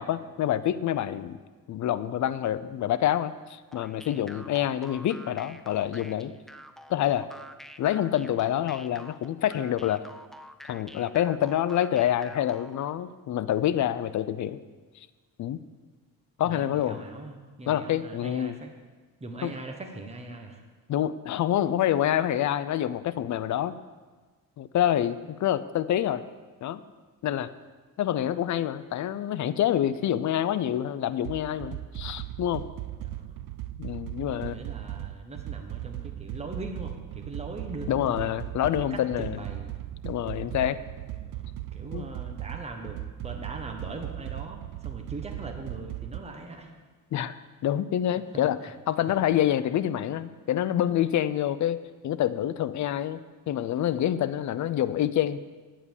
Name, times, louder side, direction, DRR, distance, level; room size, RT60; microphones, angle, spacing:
voice 1, 0.0-1.4 1.7-6.3 6.9-7.3 7.8-10.0 10.7-14.6 15.4-15.6 16.4-17.0 17.7-18.6 19.4-19.5 20.9-23.7 24.6-26.2 26.6-26.8 27.2-27.5 28.0-32.6 33.8-34.6 37.9-39.4 40.0-40.8 41.9-42.1 47.1-47.3 47.6-48.6 48.9-51.8 52.0-55.4, left 11 dB, 55° left, 13 dB, 0.6 m, -27 dB
sound 1, 3.7-12.9, equal, ahead, 0.4 m, -47 dB
voice 2, 16.4-18.7 19.2-20.6 33.0-33.3 34.4-38.2 38.9-39.7 41.1-46.7, right 2 dB, 20° right, 3 dB, 1.3 m, -41 dB
sound 2, 31.2-46.2, right 14 dB, 85° right, 0.6 m, -38 dB
9.9 x 8.6 x 7.2 m, 1.4 s
cardioid pair, 130°, 35 cm